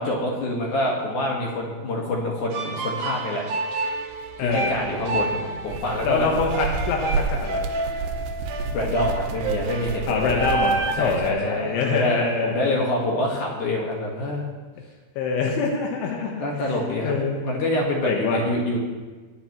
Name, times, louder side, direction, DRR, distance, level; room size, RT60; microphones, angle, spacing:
voice 1, 0.0-3.5 4.4-6.3 8.7-10.5 10.9-14.5 16.4-17.1 17.4-18.8, left 1 dB, 55° left, -2 dB, 2.4 m, -26 dB
sound 1, 2.5-10.9, right 3 dB, 65° right, 2.5 m, -29 dB
sound 2, 4.1-11.3, right 4 dB, 80° right, 2.9 m, -31 dB
voice 2, 4.4-4.8 6.0-7.7 10.1-12.9 15.2-16.8 17.0-17.4 18.1-18.4, left 4 dB, 85° left, 0 dB, 3.6 m, -25 dB
21.5 x 10.0 x 3.1 m, 1.3 s
omnidirectional pair, 5.4 m